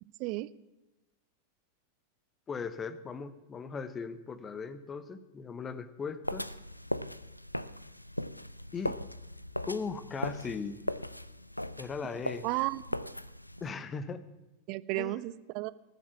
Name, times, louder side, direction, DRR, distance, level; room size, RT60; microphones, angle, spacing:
voice 1, 2.5-6.5 8.7-9.0 9.7-10.8 11.8-12.4 13.6-14.2 14.9-15.3, left 5 dB, 20° left, 15 dB, 0.9 m, -38 dB
sound 1, 6.2-13.7, left 1 dB, 90° left, 0.4 m, -38 dB
voice 2, 12.4-13.1 14.7-15.7, right 20 dB, 45° right, 17 dB, 0.5 m, -33 dB
18.5 x 7.4 x 7.0 m, 1.0 s
figure-of-eight pair, 90°, 0 cm